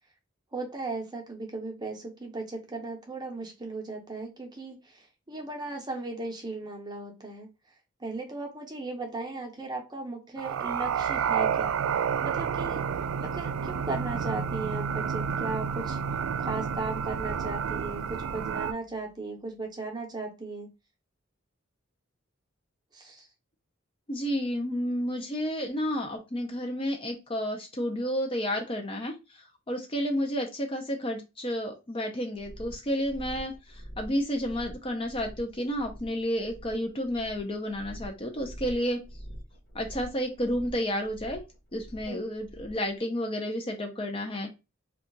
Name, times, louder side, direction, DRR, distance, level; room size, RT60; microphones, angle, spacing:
voice 1, 0.5-7.5 8.0-11.8 12.2-12.8 13.2-16.0 16.4-20.7 22.9-23.3 42.1-42.2, right 3 dB, 20° right, 1 dB, 0.7 m, -36 dB
sound 1, 10.4-18.7, right 7 dB, 85° right, 0.3 m, -30 dB
sound 2, 18.7-19.6, right 2 dB, 85° left, 0.6 m, -51 dB
voice 2, 24.1-29.1 29.7-39.0 39.7-41.4 41.7-44.5, equal, 25° left, 2 dB, 0.5 m, -31 dB
sound 3, 32.4-42.9, equal, 45° left, 1.1 m, -45 dB
2.7 x 2.3 x 3.8 m, 0.27 s
head